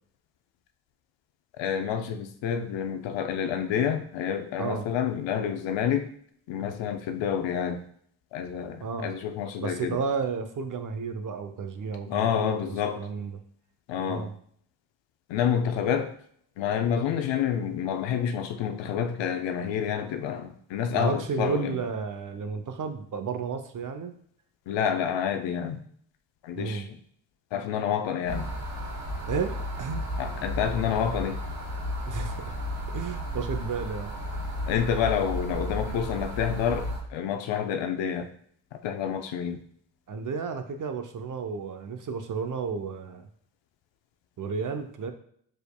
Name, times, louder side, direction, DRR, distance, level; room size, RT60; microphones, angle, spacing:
voice 1, 1.6-6.1 6.5-7.8 8.3-10.0 12.1-13.1 13.9-14.3 15.3-16.1 16.6-21.8 24.7-25.8 26.4-26.8 27.5-28.5 30.2-31.4 34.7-38.3 38.8-39.6, left 8 dB, 65° left, 7 dB, 0.7 m, -28 dB
voice 2, 8.8-9.1 9.6-13.4 14.1-14.3 20.9-24.1 26.5-26.9 29.3-30.0 32.1-32.5 32.9-34.1 40.1-43.3 44.4-45.1, right 5 dB, 40° right, 8 dB, 0.7 m, -32 dB
sound 1, 28.3-37.0, equal, 70° right, 2.0 m, -33 dB
5.0 x 4.5 x 2.2 m, 0.64 s
hypercardioid pair, 45°, 48 cm